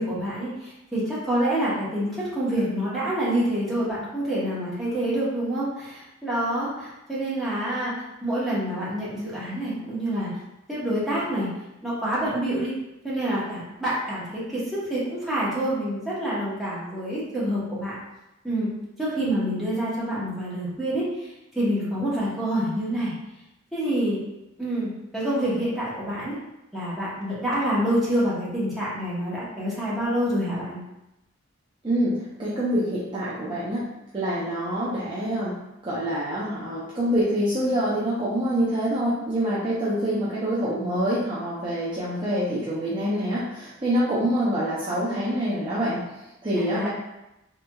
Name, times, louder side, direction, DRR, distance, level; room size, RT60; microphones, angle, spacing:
voice 1, 0.0-7.9 8.2-10.3 10.7-11.5 11.8-12.7 13.0-17.9 18.4-18.7 19.0-23.1 23.7-24.2 24.6-26.4 26.7-30.8 46.5-46.9, right 1 dB, ahead, -10 dB, 0.9 m, -27 dB
voice 2, 31.8-33.8 34.1-35.5 35.8-46.0 46.4-46.9, equal, 25° right, -9 dB, 0.5 m, -26 dB
3.2 x 2.9 x 2.3 m, 0.92 s
head